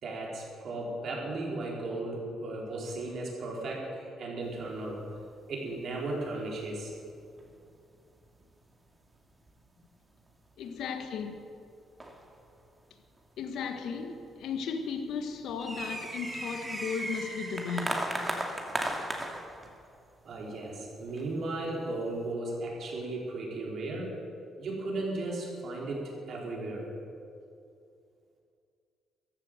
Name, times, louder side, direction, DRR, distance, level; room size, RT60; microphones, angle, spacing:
voice 1, 0.0-5.1 5.5-6.9 20.2-24.1 24.6-26.9, right 2 dB, 60° right, 4.4 m, -35 dB
sound 1, 4.8-5.3 5.5-5.6 6.3-6.4 7.1-7.7 8.2-8.7 9.4-10.2 10.8-10.9 11.2-11.3 12.0-12.6 13.2-13.3 13.9-14.0 14.2-14.5 15.1-19.7 20.3-20.4 21.1-21.4, right 1 dB, 20° right, 2.3 m, -36 dB
voice 2, 10.6-11.4 13.4-18.2, left 5 dB, 80° left, 1.6 m, -35 dB
14.5 x 11.5 x 7.7 m
cardioid pair, 90°, 0 cm